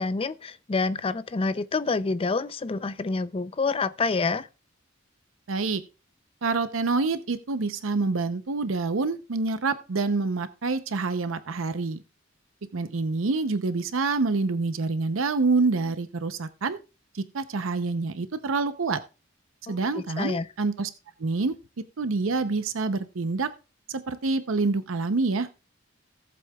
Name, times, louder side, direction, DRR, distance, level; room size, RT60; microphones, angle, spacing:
voice 1, 0.0-4.5 19.7-20.5, left 3 dB, 30° left, 0.5 m, -28 dB
voice 2, 5.5-5.8 6.4-12.0 12.7-16.8 17.1-19.0 19.7-20.9 21.2-21.6 22.0-23.5 23.9-25.5, right 3 dB, 85° right, 0.7 m, -27 dB
18.0 x 7.6 x 2.3 m
head